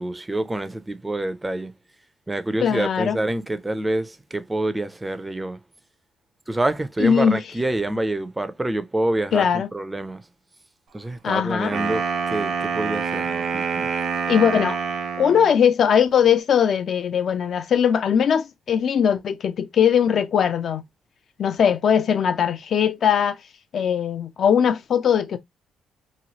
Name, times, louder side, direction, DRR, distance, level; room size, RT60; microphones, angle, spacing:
voice 1, 0.0-1.7 2.3-5.6 6.5-10.2 10.9-13.9, right 1 dB, 15° right, 0.4 m, -27 dB
voice 2, 2.6-3.2 7.0-7.4 9.3-9.7 11.2-11.7 14.3-14.8 15.2-20.8 21.4-23.4 23.7-25.4, left 8 dB, 60° left, 0.4 m, -20 dB
Wind instrument woodwind instrument, 11.6-15.6, right 5 dB, 65° right, 0.7 m, -26 dB
3.0 x 2.3 x 2.7 m
cardioid pair, 90°, 0 cm